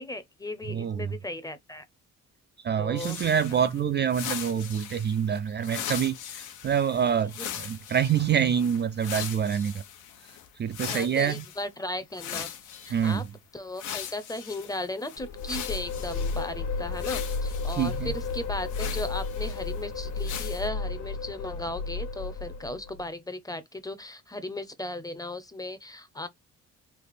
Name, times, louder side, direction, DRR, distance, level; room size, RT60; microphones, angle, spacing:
voice 1, 0.0-1.9 2.8-3.3 7.4-7.5 10.8-12.5 12.8-13.2 13.5-26.3, left 1 dB, 10° left, 0.7 m, -36 dB
voice 2, 0.7-1.1 2.6-9.7 10.6-11.4 12.9-13.2 17.8-18.1, right 8 dB, 35° right, 0.4 m, -26 dB
sound 1, 3.0-11.6 12.1-13.3 13.7-16.5 16.9-19.8 20.2-20.7, left 9 dB, 80° left, 1.0 m, -40 dB
sound 2, 15.2-23.0, left 4 dB, 60° left, 1.1 m, -33 dB
3.4 x 2.4 x 4.0 m
cardioid pair, 90°, 30 cm